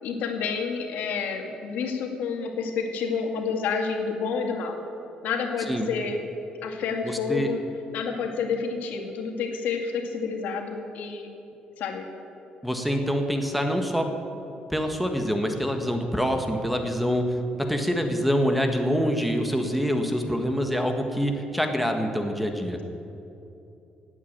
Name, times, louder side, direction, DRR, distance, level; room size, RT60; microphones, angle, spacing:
voice 1, 0.0-4.8 5.2-6.2 6.6-7.6 7.9-11.3 11.8-12.1, left 5 dB, 85° left, 3 dB, 2.1 m, -29 dB
voice 2, 7.0-7.5 12.6-14.1 14.7-22.8, equal, ahead, 4 dB, 1.5 m, -25 dB
18.0 x 8.5 x 8.8 m, 2.8 s
cardioid pair, 130°, 3 cm